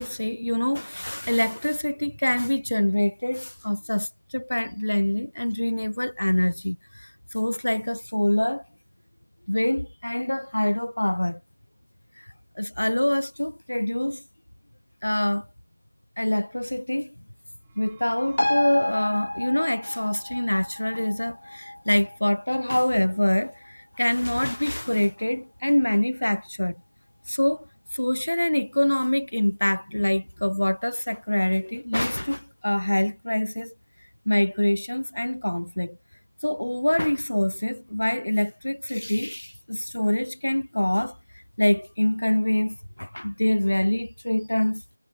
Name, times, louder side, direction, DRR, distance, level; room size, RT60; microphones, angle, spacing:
voice 1, 0.0-8.6 9.5-11.4 12.6-14.2 15.0-15.5 16.2-17.1 17.8-26.8 27.3-27.7 27.9-33.7 34.3-36.0 36.4-41.2 41.6-44.8, left 1 dB, 90° left, 0.7 m, -25 dB
sound 1, 17.5-19.4, right 8 dB, 10° right, 3.2 m, -54 dB
sound 2, 18.4-25.3 25.7-25.8, left 1 dB, 75° left, 1.3 m, -32 dB
figure-of-eight pair, 175°, 0 cm